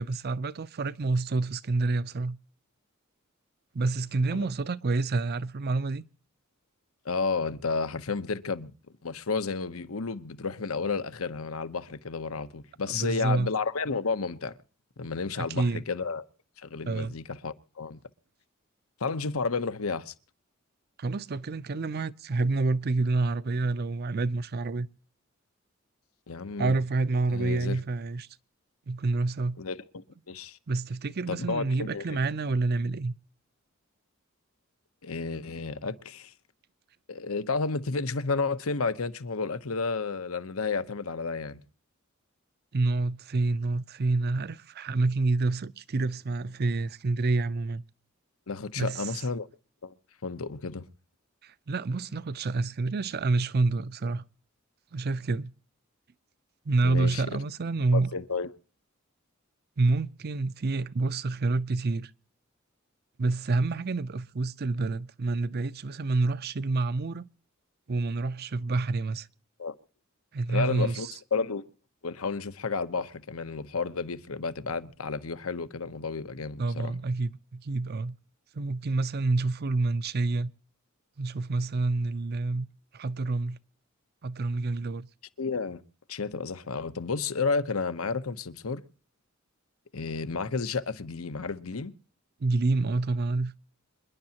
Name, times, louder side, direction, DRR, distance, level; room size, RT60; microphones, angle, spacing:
voice 1, 0.0-2.4 3.7-6.0 12.9-13.5 15.4-15.8 16.9-17.1 21.0-24.9 26.6-28.3 28.9-29.6 30.7-33.1 42.7-47.8 48.8-49.1 51.4-54.2 54.9-55.5 56.7-58.1 59.8-62.1 63.2-67.3 67.9-69.3 70.3-71.1 76.6-78.2 78.5-80.5 81.2-82.7 82.9-83.6 84.2-85.1 92.4-93.5, right 3 dB, 50° right, 0.6 m, -28 dB
voice 2, 7.0-8.7 9.0-14.5 15.0-16.2 16.6-18.0 19.0-20.1 26.3-26.7 27.3-27.8 29.6-30.6 31.3-32.0 35.0-36.3 37.1-41.6 48.5-49.5 49.8-49.9 50.2-50.9 56.8-57.4 57.9-58.5 69.6-69.7 70.5-71.6 72.0-76.9 85.4-85.8 86.1-88.8 89.9-91.9, left 4 dB, 85° left, 0.9 m, -31 dB
27.0 x 10.5 x 2.9 m
head